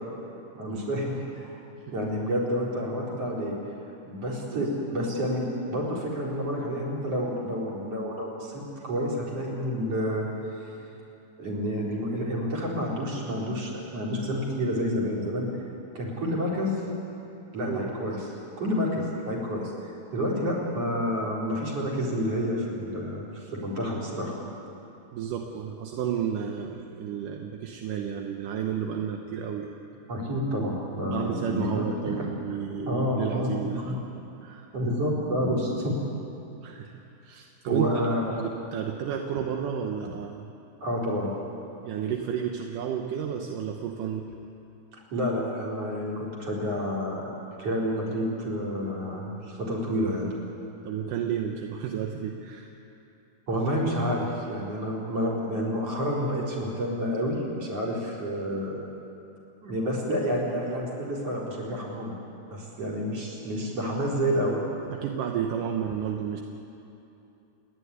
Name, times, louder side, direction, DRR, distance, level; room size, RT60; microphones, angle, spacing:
voice 1, 0.5-1.6 1.9-3.5 4.1-10.3 10.6-10.7 11.4-15.5 15.9-16.8 17.5-18.2 18.6-24.3 30.1-31.9 32.9-34.0 34.7-36.0 37.7-38.2 40.8-41.3 44.9-47.3 47.6-50.3 53.5-58.8 59.6-62.2 62.5-64.6, equal, 45° right, -2 dB, 5.1 m, -29 dB
voice 2, 25.1-29.7 31.0-33.9 34.4-34.7 36.6-38.0 38.3-40.5 41.8-44.3 50.8-52.7 64.9-66.4, right 8 dB, 80° right, 2 dB, 2.6 m, -32 dB
30.0 x 11.5 x 9.7 m, 2.8 s
omnidirectional pair, 3.8 m